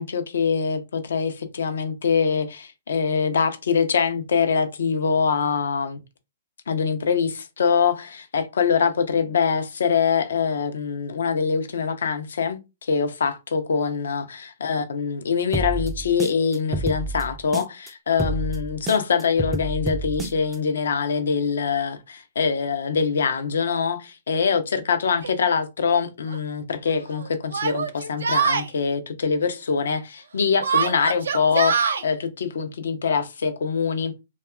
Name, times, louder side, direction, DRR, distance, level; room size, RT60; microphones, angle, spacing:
voice 1, 0.0-6.0 6.7-34.1, left 6 dB, 75° left, 0.5 m, -24 dB
sound 1, 15.5-17.9 18.2-20.6, right 2 dB, 15° right, 0.3 m, -29 dB
Yell, 25.2-25.3 26.3-26.4 27.5-28.7 30.6-32.0, right 6 dB, 80° right, 0.4 m, -23 dB
2.8 x 2.2 x 2.3 m
hypercardioid pair, 125°, 0 cm